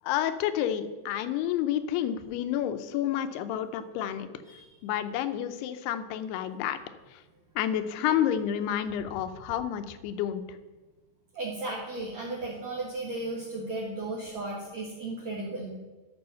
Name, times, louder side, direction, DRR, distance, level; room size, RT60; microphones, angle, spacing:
voice 1, 0.1-4.3 4.8-6.8 7.6-10.6, left 10 dB, 80° left, 11 dB, 2.7 m, -29 dB
voice 2, 11.3-15.7, right 2 dB, 55° right, -2 dB, 2.2 m, -35 dB
12.5 x 6.1 x 5.6 m, 1.2 s
omnidirectional pair, 4.7 m